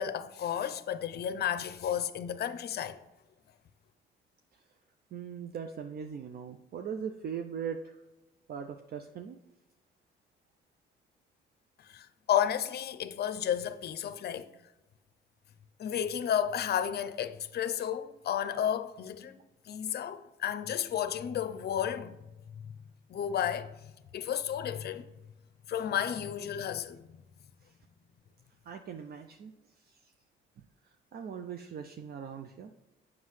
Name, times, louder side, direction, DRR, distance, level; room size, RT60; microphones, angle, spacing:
voice 1, 0.0-3.0 11.9-14.5 15.8-19.3 19.7-22.2 23.1-23.7 24.1-25.1 25.7-27.0, left 9 dB, 55° left, 0.5 m, -32 dB
voice 2, 5.1-8.0 8.5-9.4 28.7-29.5 29.9-30.1 31.1-32.7, right 7 dB, 50° right, 0.5 m, -40 dB
7.4 x 6.0 x 3.2 m
cardioid pair, 90°, 20 cm